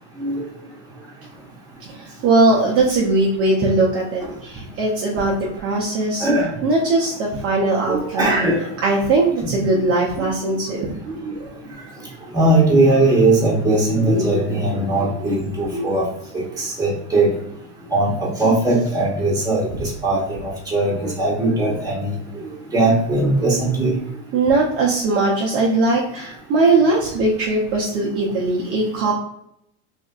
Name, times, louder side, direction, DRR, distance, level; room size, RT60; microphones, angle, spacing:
voice 1, 2.0-6.3 6.6-8.4 8.8-10.9 24.3-29.1, right 2 dB, 40° right, -3 dB, 0.6 m, -19 dB
voice 2, 6.2-6.5 7.9-8.6 9.4-9.5 10.1-10.3 11.0-11.4 12.3-16.1 16.3-17.3 17.9-22.2 22.7-24.0, right 2 dB, 10° right, -5 dB, 1.2 m, -19 dB
3.4 x 2.4 x 2.3 m, 0.75 s
supercardioid pair, 115°, 36 cm